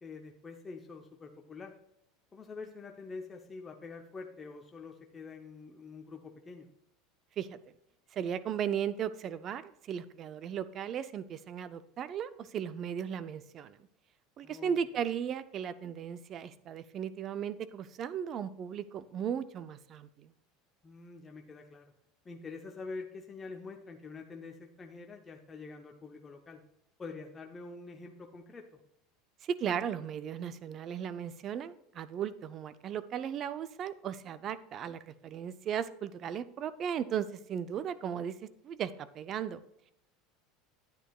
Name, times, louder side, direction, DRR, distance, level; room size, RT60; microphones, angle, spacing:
voice 1, 0.0-1.7 2.3-6.7 14.4-14.8 20.8-21.9 22.2-26.6 27.0-28.6, left 4 dB, 15° left, 3 dB, 0.7 m, -46 dB
voice 2, 8.1-13.8 14.4-20.3 29.4-39.6, right 8 dB, 35° right, 14 dB, 0.4 m, -36 dB
10.0 x 9.1 x 2.3 m, 0.80 s
supercardioid pair, 145°, 0 cm